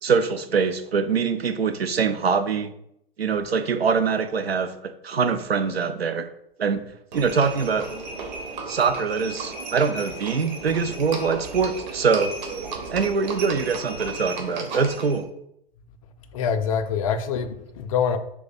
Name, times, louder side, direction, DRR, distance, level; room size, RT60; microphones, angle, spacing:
voice 1, 0.0-2.7 3.2-6.3 6.6-6.8 7.1-7.9 8.7-12.3 12.9-15.3, right 5 dB, 85° right, 0.5 m, -23 dB
Livestock farm animals working animals, 7.1-15.2, right 3 dB, 50° right, 0.9 m, -34 dB
voice 2, 16.3-18.2, left 7 dB, 35° left, 0.4 m, -25 dB
3.4 x 2.6 x 4.1 m
figure-of-eight pair, 105°, 30 cm